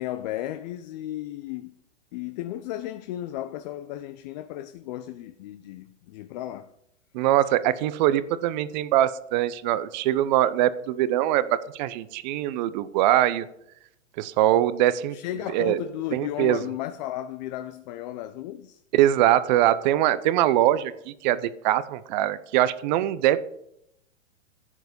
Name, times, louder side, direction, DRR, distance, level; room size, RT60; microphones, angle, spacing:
voice 1, 0.0-1.7 2.1-6.7 15.1-18.8, left 13 dB, 35° left, 0.6 m, -34 dB
voice 2, 7.1-13.5 14.2-15.1 15.5-15.8 16.1-16.6 18.9-23.4, right 13 dB, 35° right, 0.7 m, -22 dB
11.0 x 7.9 x 5.2 m
hypercardioid pair, 120°, 36 cm